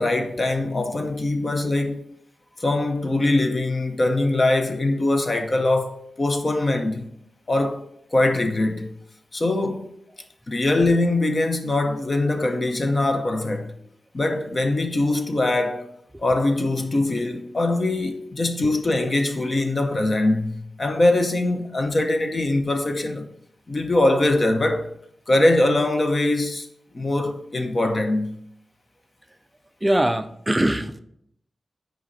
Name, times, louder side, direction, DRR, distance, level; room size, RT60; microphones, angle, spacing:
voice 1, 0.0-2.0 2.6-7.1 7.5-7.9 8.1-8.9 9.3-9.9 10.5-13.7 14.1-15.9 16.2-23.3 23.7-24.9 25.3-26.7 26.9-28.4, left 2 dB, 30° left, 0.7 m, -22 dB
voice 2, 29.8-31.0, right 1 dB, 10° right, 0.4 m, -22 dB
6.1 x 5.0 x 4.0 m
wide cardioid pair, 140°, 0 cm